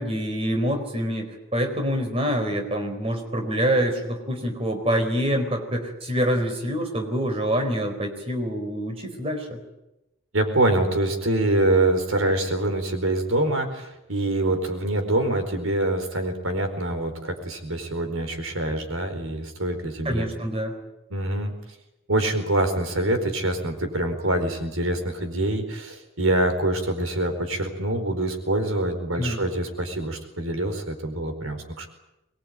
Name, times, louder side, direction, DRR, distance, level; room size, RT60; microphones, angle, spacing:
voice 1, 0.0-9.6 20.0-20.7 29.2-29.4, equal, 30° right, 4 dB, 4.3 m, -26 dB
voice 2, 10.3-20.3 21.1-21.5 22.1-31.9, right 1 dB, 85° right, 6 dB, 4.6 m, -25 dB
24.0 x 21.5 x 9.2 m, 0.93 s
head